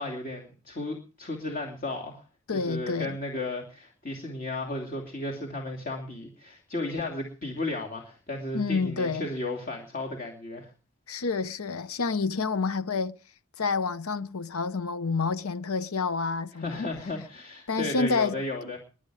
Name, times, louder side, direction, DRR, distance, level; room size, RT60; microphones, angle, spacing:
voice 1, 0.0-2.2 2.5-10.7 16.5-18.8, left 2 dB, 40° left, 2.8 m, -34 dB
voice 2, 2.5-3.2 8.5-9.3 11.1-13.2 13.6-16.8 17.7-18.4 18.6-18.7, left 4 dB, 80° left, 0.8 m, -28 dB
22.0 x 8.6 x 4.9 m
head